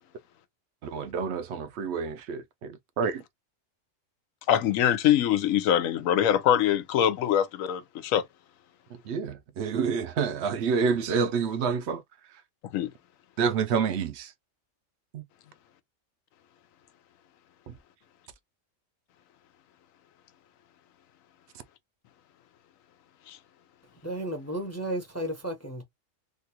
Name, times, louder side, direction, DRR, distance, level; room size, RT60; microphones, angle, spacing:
voice 1, 0.8-3.2 9.1-12.0 13.4-14.3 15.1-15.2, right 6 dB, 65° right, 0.7 m, -28 dB
voice 2, 4.5-8.2 12.7-12.9 23.3-23.4, left 10 dB, 85° left, 1.0 m, -23 dB
voice 3, 24.0-25.8, right 1 dB, 15° left, 0.5 m, -33 dB
3.6 x 2.3 x 2.8 m
omnidirectional pair, 1.3 m